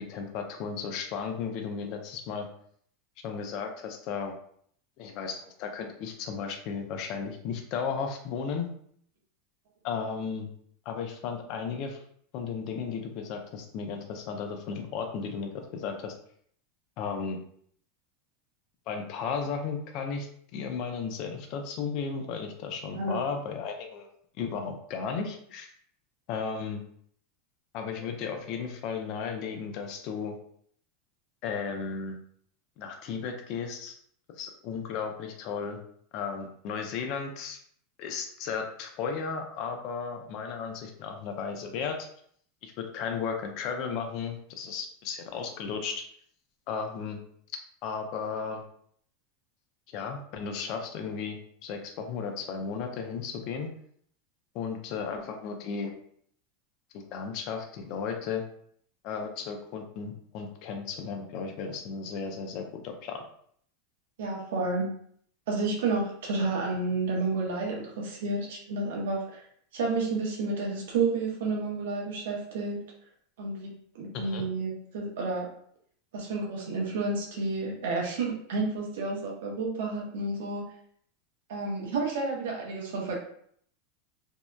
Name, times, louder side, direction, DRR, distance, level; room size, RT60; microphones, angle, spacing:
voice 1, 0.0-2.5 3.2-4.3 5.0-8.7 9.8-10.5 10.9-12.0 12.3-16.1 17.0-17.4 18.9-20.3 20.5-24.1 24.4-25.7 26.3-26.8 27.7-30.4 31.4-32.2 32.8-33.9 34.4-35.8 36.1-37.6 38.0-42.0 42.6-46.0 46.7-47.2 47.8-48.6 49.9-53.7 54.5-55.9 56.9-58.4 59.0-63.2 74.1-74.4, left 6 dB, 50° left, 4 dB, 0.4 m, -34 dB
voice 2, 22.9-23.2 64.2-64.9 65.5-69.4 69.7-72.8 73.4-73.7 73.9-75.5 76.1-80.7 81.5-83.2, right 3 dB, 80° right, -2 dB, 0.6 m, -30 dB
2.7 x 2.1 x 2.2 m, 0.64 s
supercardioid pair, 135°, 0 cm